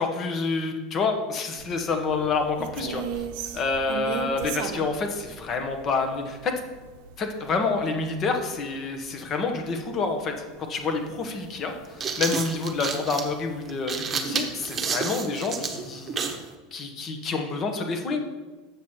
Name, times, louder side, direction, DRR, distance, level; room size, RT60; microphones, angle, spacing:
voice 1, 0.0-3.2 3.5-6.5 7.2-10.3 10.7-16.2 16.7-18.2, left 4 dB, 40° left, 5 dB, 1.3 m, -28 dB
sound 1, 1.6-12.0 12.3-12.5 12.9-13.7 14.1-14.2 14.5-14.9, right 8 dB, 65° right, 0.6 m, -38 dB
sound 2, 10.6-10.7 11.7-16.5, right 5 dB, 30° right, 1.1 m, -30 dB
7.3 x 6.1 x 4.5 m, 1.2 s
hypercardioid pair, 95°, 0 cm